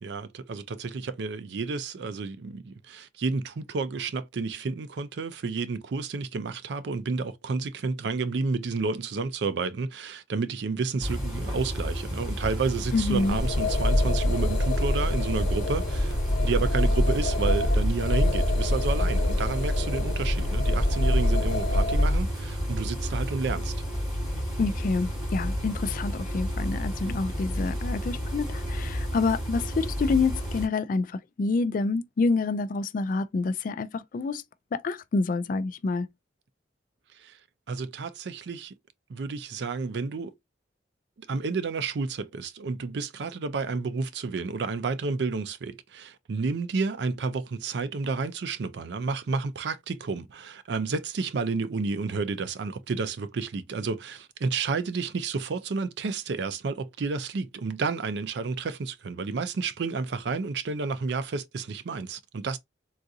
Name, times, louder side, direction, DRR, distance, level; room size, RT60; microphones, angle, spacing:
voice 1, 0.0-23.7 37.2-37.4 37.7-38.7 39.1-40.3 41.2-62.6, right 4 dB, 65° right, 0.4 m, -31 dB
sound 1, 11.0-30.7, equal, 25° right, 2.5 m, -31 dB
voice 2, 12.9-13.4 24.6-34.4 34.7-36.1, left 3 dB, 45° left, 0.3 m, -27 dB
sound 2, 13.1-22.2, left 1 dB, 80° left, 0.9 m, -25 dB
3.7 x 2.4 x 2.6 m
head